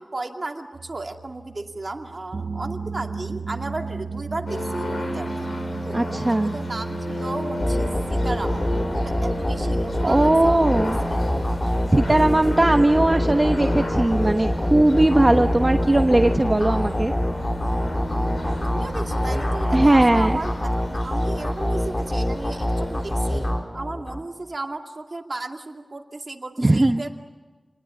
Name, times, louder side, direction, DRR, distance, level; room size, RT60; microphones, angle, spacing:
voice 1, 0.0-5.5 5.8-10.9 18.6-23.5 23.7-27.1, right 2 dB, 50° right, 3 dB, 2.4 m, -34 dB
sound 1, 0.7-19.0, right 5 dB, 75° right, 1.0 m, -37 dB
sound 2, 4.5-23.5, left 1 dB, 75° left, 6.4 m, -33 dB
voice 2, 5.9-6.5 10.0-11.0 11.9-17.1 19.7-20.4 26.6-27.0, right 1 dB, 30° right, 5 dB, 1.1 m, -19 dB
sound 3, 7.6-24.2, left 1 dB, 35° left, 3.6 m, -25 dB
29.0 x 20.5 x 9.6 m, 1.3 s
wide cardioid pair, 75°, 0 cm